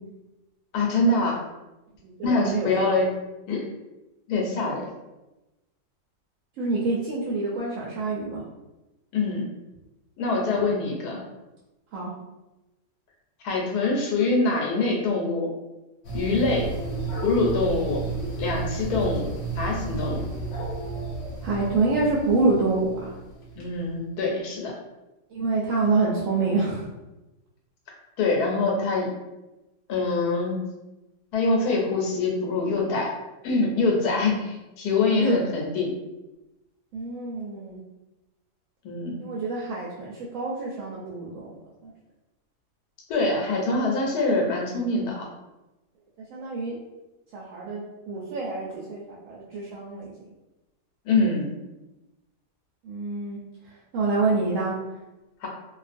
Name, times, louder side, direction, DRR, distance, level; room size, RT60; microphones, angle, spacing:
voice 1, 0.7-1.4 2.2-3.2 3.5-3.6 4.3-4.9 9.1-9.4 10.2-11.2 13.4-15.5 16.1-16.7 17.2-18.0 18.4-20.3 23.6-24.7 28.2-29.1 29.9-30.7 31.3-33.1 33.4-35.9 38.8-39.2 43.1-45.3 51.0-51.5 55.4-55.5, left 3 dB, 85° left, -1 dB, 1.2 m, -24 dB
voice 2, 2.0-2.9 6.6-8.4 10.5-10.7 11.9-12.1 21.4-22.9 25.3-26.8 35.2-35.4 36.9-37.8 39.2-41.5 41.8-41.9 46.3-46.7 47.3-47.8 48.1-50.1 52.8-53.4 53.9-54.7, right 3 dB, 70° right, -5 dB, 0.8 m, -26 dB
sound 1, 16.0-23.7, right 3 dB, 60° left, 0.9 m, -32 dB
2.5 x 2.3 x 2.5 m, 1.0 s
omnidirectional pair, 1.7 m